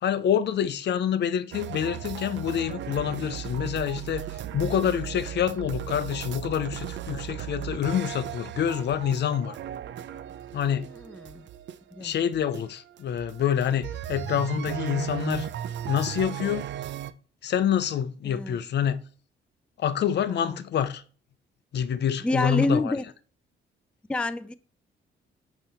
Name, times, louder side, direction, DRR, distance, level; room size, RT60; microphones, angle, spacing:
voice 1, 0.0-9.6 10.5-10.9 12.0-15.5 15.9-16.7 17.4-19.0 19.8-21.0 21.7-22.9, left 9 dB, 60° left, 0.6 m, -27 dB
sound 1, 1.5-17.1, right 11 dB, 65° right, 0.5 m, -36 dB
voice 2, 11.0-11.5 11.9-12.1 18.2-18.6 20.3-20.6 22.2-23.0 24.1-24.5, left 2 dB, 5° left, 0.4 m, -28 dB
8.8 x 3.1 x 5.4 m
cardioid pair, 90°, 20 cm